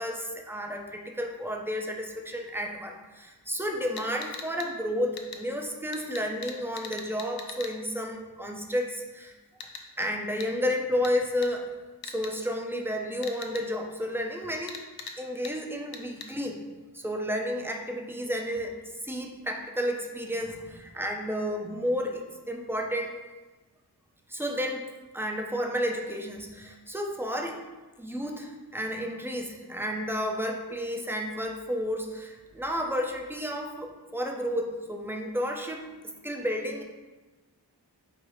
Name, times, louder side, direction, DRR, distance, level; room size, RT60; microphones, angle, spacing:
voice 1, 0.0-9.3 10.0-11.7 12.0-14.8 15.2-16.6 16.9-18.7 19.0-23.1 24.3-24.9 25.1-27.6 28.0-35.8 36.2-36.8, equal, 5° right, 2 dB, 0.6 m, -31 dB
sound 1, 4.0-4.7 5.2-5.4 5.9-7.7 9.6-9.8 10.4-10.5 11.0-11.1 11.4-11.5 12.0-12.3 13.2-13.6 14.7-15.2 15.4-15.5 15.9-16.3, left 5 dB, 60° left, 0.6 m, -40 dB
4.8 x 2.1 x 4.7 m, 1.2 s
cardioid pair, 50°, 41 cm